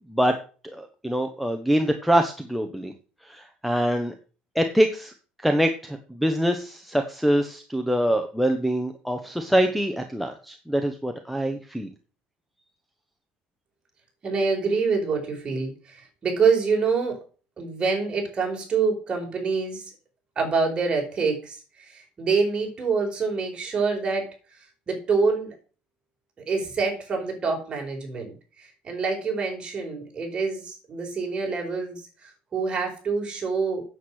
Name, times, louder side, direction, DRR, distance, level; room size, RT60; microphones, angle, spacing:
voice 1, 0.6-2.9 3.3-4.1 4.5-5.1 5.4-11.9, equal, ahead, 4 dB, 1.1 m, -24 dB
voice 2, 14.2-17.2 17.6-19.9 20.3-24.3 24.9-25.5 26.5-33.8, right 4 dB, 30° right, 1 dB, 5.2 m, -26 dB
9.2 x 8.1 x 6.4 m, 0.37 s
cardioid pair, 140°, 3 cm